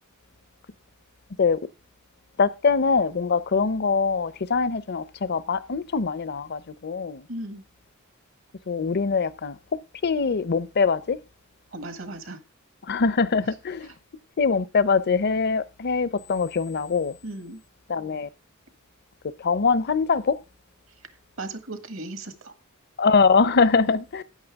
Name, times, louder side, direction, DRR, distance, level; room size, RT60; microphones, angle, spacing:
voice 1, 2.4-7.3 8.7-9.6 10.0-11.2 12.8-13.9 14.4-17.2 17.9-18.3 19.4-20.4 23.0-24.2, left 4 dB, 50° left, 0.6 m, -23 dB
voice 2, 7.3-7.6 11.7-12.4 17.2-17.6 21.4-22.5, right 2 dB, 70° right, 1.7 m, -36 dB
13.0 x 9.4 x 3.5 m
head